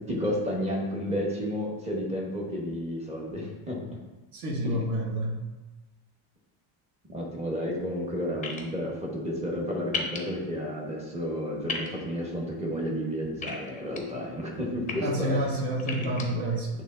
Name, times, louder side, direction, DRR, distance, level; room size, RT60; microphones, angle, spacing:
voice 1, 0.0-3.8 4.6-4.8 7.1-15.5 16.0-16.4, equal, 15° right, -3 dB, 1.1 m, -32 dB
voice 2, 4.3-5.4 15.0-16.7, right 1 dB, 45° right, 0 dB, 1.2 m, -29 dB
sound 1, 8.4-8.6 9.9-10.2 11.7-11.9 13.4-14.0 14.6-14.9 15.8-16.2, left 5 dB, 15° left, 0.6 m, -32 dB
8.3 x 3.2 x 3.8 m, 1.1 s
cardioid pair, 170°, 47 cm